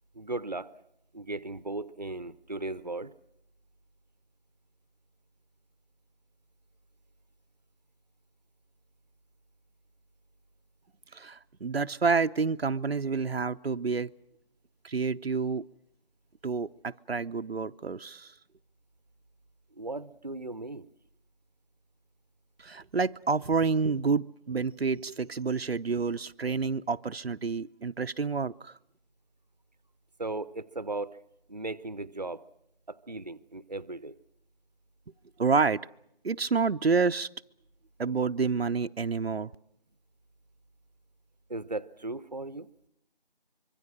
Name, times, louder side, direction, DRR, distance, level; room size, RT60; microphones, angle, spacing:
voice 1, 0.1-0.7 1.1-3.1 19.7-20.9 30.2-31.2 31.5-32.4 32.9-34.2 41.5-42.7, right 2 dB, 45° right, 16 dB, 0.8 m, -37 dB
voice 2, 11.1-14.1 14.8-15.6 16.4-18.3 22.6-28.7 35.4-35.8 36.2-37.3 38.0-39.5, right 4 dB, 85° right, 9 dB, 0.8 m, -28 dB
25.5 x 24.0 x 6.3 m, 0.78 s
figure-of-eight pair, 180°, 30 cm